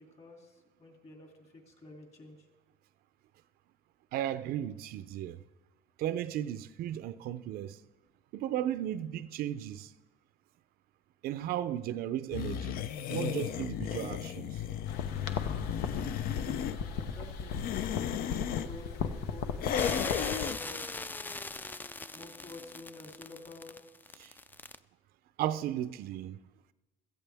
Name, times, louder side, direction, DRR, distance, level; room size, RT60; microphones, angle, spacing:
voice 1, 0.0-2.4 16.9-17.6 18.0-20.1 20.6-21.0 22.1-23.8, left 2 dB, 40° left, 2.8 m, -50 dB
voice 2, 4.1-5.4 6.0-7.8 8.3-9.9 11.2-12.8 13.1-14.6 24.2-24.3 25.4-26.4, right 11 dB, 70° right, 0.5 m, -35 dB
sound 1, 12.3-16.8 17.4-18.7 19.6-20.6, left 9 dB, 65° left, 0.6 m, -34 dB
sound 2, 14.9-20.5, left 6 dB, 85° left, 1.0 m, -37 dB
sound 3, 19.8-24.8, left 3 dB, 10° left, 0.4 m, -40 dB
16.5 x 14.0 x 3.5 m
cardioid pair, 115°, 16 cm